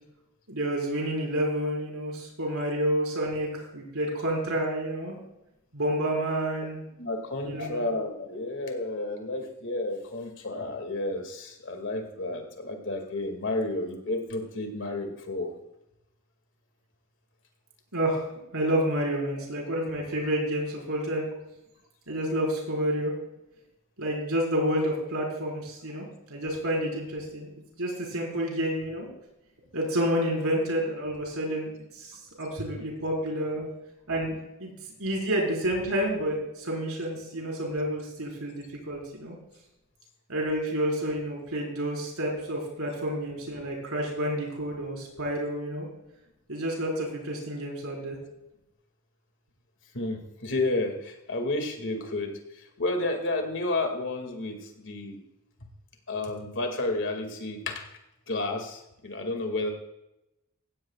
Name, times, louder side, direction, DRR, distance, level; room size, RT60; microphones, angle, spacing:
voice 1, 0.5-5.2 5.7-6.8 7.4-7.8 17.9-18.3 18.5-21.3 22.1-23.1 24.0-27.5 27.8-29.1 29.7-33.6 34.1-34.3 34.6-34.7 35.0-39.4 40.3-45.9 46.5-48.2, right 1 dB, 75° right, -2 dB, 4.8 m, -29 dB
voice 2, 7.0-15.5 32.6-32.7 49.9-55.2 56.1-57.8 58.3-59.7, left 2 dB, 60° left, 3 dB, 2.3 m, -31 dB
16.5 x 16.0 x 2.4 m, 0.89 s
head